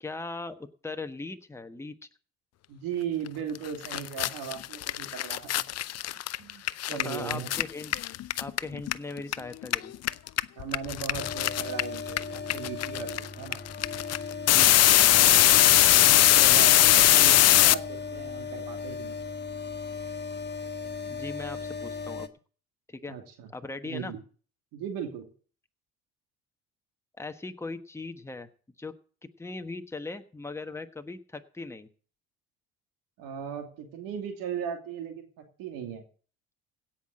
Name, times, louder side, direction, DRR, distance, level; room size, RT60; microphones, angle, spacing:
voice 1, 0.0-2.0 6.5-6.6 6.9-7.9 8.4-9.9 14.4-14.8 21.0-22.3 22.9-23.2 23.5-24.1 27.2-28.5 28.8-28.9 29.4-31.9, left 3 dB, 10° left, 7 dB, 1.2 m, -39 dB
voice 2, 2.7-5.4 6.4-7.5 10.6-13.6 15.9-19.2 23.1-23.5 23.8-24.2 24.7-25.3 33.2-35.3 35.6-36.0, right 7 dB, 75° right, 4 dB, 2.7 m, -37 dB
sound 1, 3.6-3.7 3.8-9.3 9.6-17.7, left 14 dB, 50° left, 0.6 m, -20 dB
sound 2, 11.2-22.3, left 5 dB, 30° left, 1.4 m, -37 dB
16.5 x 6.0 x 7.6 m, 0.42 s
supercardioid pair, 75°, 34 cm